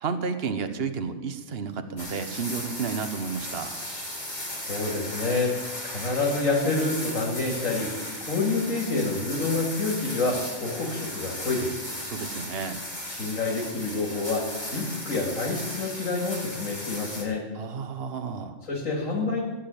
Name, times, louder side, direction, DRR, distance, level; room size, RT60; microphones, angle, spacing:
voice 1, 0.0-3.7 12.0-12.8 17.5-18.6, right 5 dB, 50° right, 8 dB, 1.3 m, -31 dB
sound 1, 2.0-17.2, left 1 dB, 25° left, 4.2 m, -36 dB
voice 2, 4.5-11.8 13.1-17.4 18.7-19.4, left 3 dB, 85° left, -3 dB, 3.0 m, -28 dB
16.5 x 7.6 x 9.0 m, 1.2 s
omnidirectional pair, 1.3 m